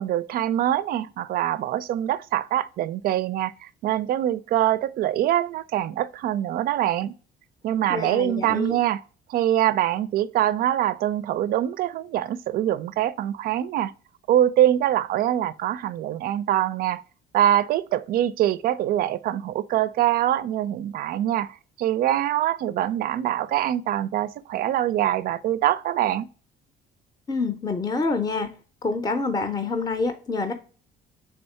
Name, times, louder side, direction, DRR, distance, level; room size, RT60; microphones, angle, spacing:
voice 1, 0.0-7.1 7.6-9.0 9.3-13.9 14.3-17.0 17.3-26.3, right 12 dB, 60° right, 0.4 m, -24 dB
voice 2, 7.9-8.7 27.3-28.5 28.8-30.5, left 3 dB, 20° left, 0.5 m, -27 dB
3.6 x 2.7 x 4.3 m
cardioid pair, 110°, 17 cm